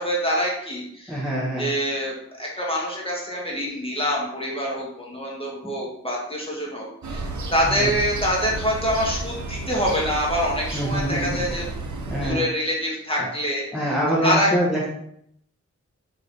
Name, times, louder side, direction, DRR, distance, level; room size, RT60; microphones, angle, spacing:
voice 1, 0.0-1.2 1.6-11.6 12.0-13.6 14.2-14.5, equal, 20° left, -4 dB, 1.4 m, -25 dB
voice 2, 1.1-1.7 5.6-5.7 7.6-7.9 10.7-11.5 12.1-12.4 13.2-13.3 13.7-14.9, equal, ahead, -6 dB, 1.1 m, -25 dB
sound 1, 7.0-12.3, right 2 dB, 75° right, 0.6 m, -32 dB
4.0 x 3.4 x 3.5 m, 0.72 s
wide cardioid pair, 70°, 30 cm